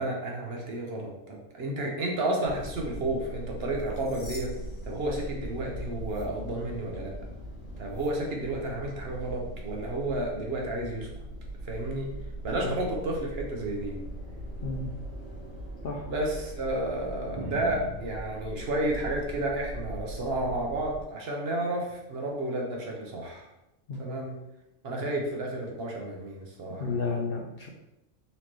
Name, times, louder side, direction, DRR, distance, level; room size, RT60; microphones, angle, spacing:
voice 1, 0.0-4.5 4.8-7.2 7.8-11.1 11.6-12.1 12.4-14.0 16.1-23.5 24.0-24.4 24.8-27.0, right 1 dB, 60° right, 0 dB, 0.9 m, -31 dB
sound 1, 2.4-21.0, right 1 dB, 85° left, 1.7 m, -40 dB
sound 2, 3.6-5.7 6.0-6.2 7.9-8.1, left 2 dB, 30° left, 1.0 m, -50 dB
voice 2, 14.6-14.9 15.8-16.1 23.9-24.1 26.8-27.7, left 4 dB, 60° left, 0 dB, 0.7 m, -32 dB
sound 3, 17.4-19.6 20.0-20.9 21.8-22.1 23.1-23.3, right 1 dB, 35° right, 0.4 m, -43 dB
4.2 x 3.1 x 3.0 m, 0.89 s
omnidirectional pair, 1.3 m